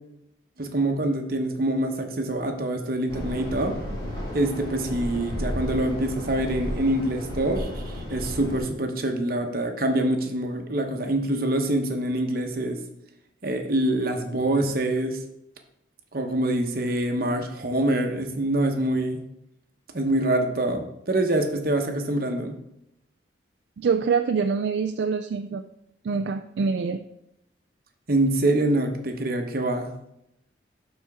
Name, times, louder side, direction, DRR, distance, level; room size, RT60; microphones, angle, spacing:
voice 1, 0.6-3.8 4.3-12.8 13.4-15.2 16.1-19.2 19.9-22.6 28.1-29.9, right 1 dB, 55° right, 4 dB, 1.0 m, -25 dB
sound 1, 3.1-8.6, equal, 25° left, 2.4 m, -33 dB
voice 2, 23.8-25.7 26.0-27.0, right 5 dB, 70° right, 7 dB, 0.4 m, -25 dB
11.5 x 4.4 x 3.6 m, 0.82 s
head